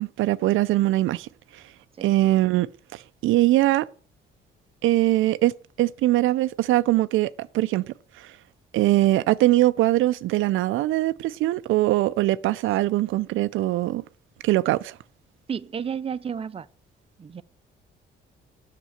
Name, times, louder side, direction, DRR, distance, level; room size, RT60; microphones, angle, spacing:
voice 1, 0.0-1.6 2.0-3.9 4.8-8.3 8.7-14.0 14.4-15.0, right 16 dB, 85° right, 0.5 m, -22 dB
voice 2, 15.5-16.7 17.2-17.4, right 7 dB, 30° right, 0.5 m, -31 dB
8.2 x 6.7 x 7.8 m
cardioid pair, 90°, 20 cm